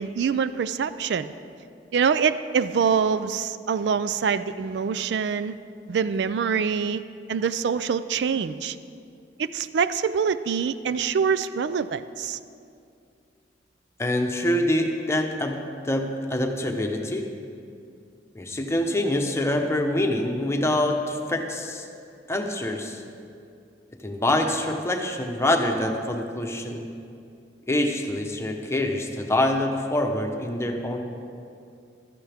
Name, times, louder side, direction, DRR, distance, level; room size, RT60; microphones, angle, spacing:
voice 1, 0.0-1.3 1.9-5.6 5.9-7.0 7.3-8.8 9.4-12.4, right 6 dB, 70° right, 14 dB, 0.4 m, -25 dB
voice 2, 14.0-17.3 18.3-21.8 22.3-23.0 24.0-26.9 27.7-31.0, left 1 dB, 15° left, 3 dB, 0.9 m, -25 dB
15.0 x 12.5 x 3.5 m, 2.5 s
head